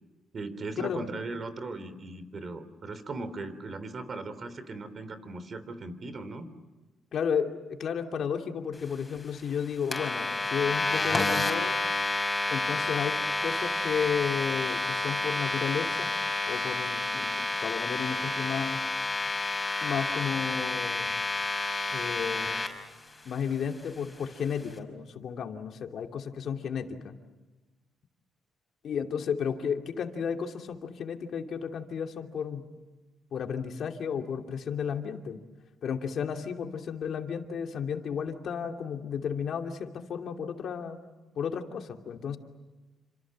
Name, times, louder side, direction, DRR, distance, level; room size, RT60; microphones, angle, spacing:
voice 1, 0.3-6.5, right 3 dB, 45° right, 12 dB, 3.4 m, -38 dB
voice 2, 7.1-11.7 12.5-16.1 16.5-18.8 19.8-21.1 21.9-22.6 23.2-27.1 28.8-32.6 33.3-35.4 35.8-41.0 41.3-42.4, left 7 dB, 60° left, 4 dB, 2.7 m, -33 dB
sound 1, 9.9-22.7, left 2 dB, 20° left, 5.7 m, -30 dB
29.0 x 26.5 x 7.6 m, 1.2 s
cardioid pair, 90°, 0 cm